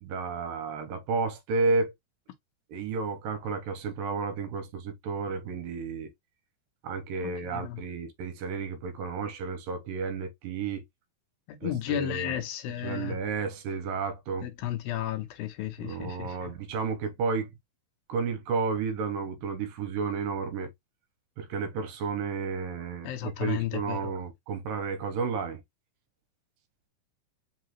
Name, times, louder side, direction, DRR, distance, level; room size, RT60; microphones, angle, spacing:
voice 1, 0.0-1.9 2.7-6.1 6.8-10.8 11.6-12.4 12.8-14.5 15.8-17.5 18.1-20.7 21.4-25.6, right 4 dB, 80° right, 2.3 m, -32 dB
voice 2, 7.2-7.8 11.5-13.2 14.4-16.5 23.0-24.1, left 12 dB, 75° left, 2.6 m, -33 dB
5.7 x 3.0 x 2.9 m
omnidirectional pair, 4.3 m